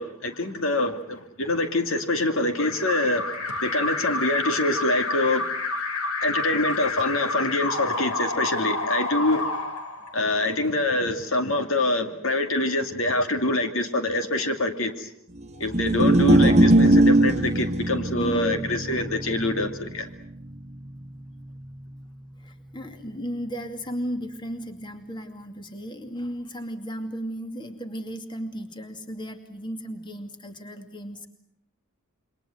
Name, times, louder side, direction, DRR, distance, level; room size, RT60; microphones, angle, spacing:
voice 1, 0.0-3.3 3.6-5.5 6.2-9.4 10.1-15.1 15.6-20.1, left 2 dB, 65° left, 6 dB, 2.4 m, -25 dB
Alarm, 2.6-10.5, left 3 dB, 90° left, 3.7 m, -29 dB
sound 1, 15.6-22.0, right 1 dB, 30° right, 1.4 m, -21 dB
voice 2, 18.1-18.7 22.4-31.3, equal, 20° left, 6 dB, 2.4 m, -35 dB
28.0 x 24.0 x 7.8 m, 0.70 s
head